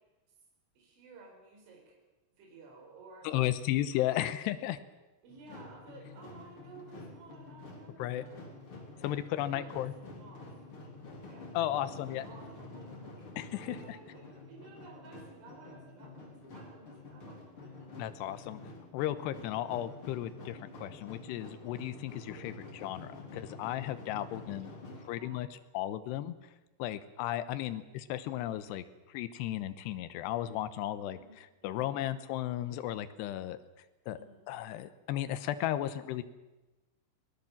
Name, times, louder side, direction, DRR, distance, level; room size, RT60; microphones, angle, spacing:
voice 1, 0.8-2.0 2.4-3.5 4.0-4.4 5.2-8.5 9.0-10.6 11.3-13.2 13.5-17.7 22.3-22.5 24.9-25.6 27.7-27.8 31.1-31.4 31.6-31.9 34.2-34.4, right 3 dB, 65° right, 0 dB, 7.1 m, -54 dB
voice 2, 3.2-4.8 8.0-8.2 9.0-9.9 11.5-12.2 13.4-14.0 18.0-18.6 18.9-22.5 22.8-24.7 25.1-26.3 26.8-33.6 34.1-34.2 34.5-36.2, left 13 dB, 75° left, 11 dB, 2.6 m, -35 dB
sound 1, 5.3-25.2, left 2 dB, 30° left, 3.8 m, -49 dB
24.5 x 18.5 x 7.3 m, 1.1 s
omnidirectional pair, 5.8 m